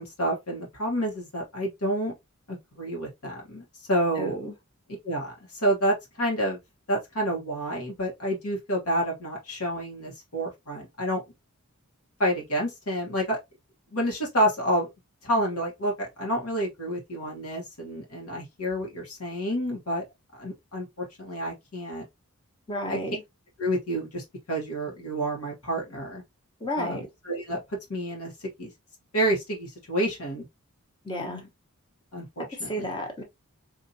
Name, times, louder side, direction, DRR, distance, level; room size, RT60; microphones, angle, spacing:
voice 1, 0.0-2.1 2.5-4.4 5.0-6.6 6.9-11.2 12.2-13.4 13.9-14.9 15.2-20.0 20.4-22.0 22.9-23.0 23.6-26.2 26.8-27.6 27.9-28.3 28.6-28.7 29.1-30.4 31.1-31.5 32.1-32.9, right 1 dB, 75° left, 1.3 m, -29 dB
voice 2, 4.2-4.5 22.7-23.2 26.6-27.1 31.0-31.4 32.4-33.2, equal, 20° left, 1.0 m, -32 dB
4.1 x 2.6 x 2.7 m
head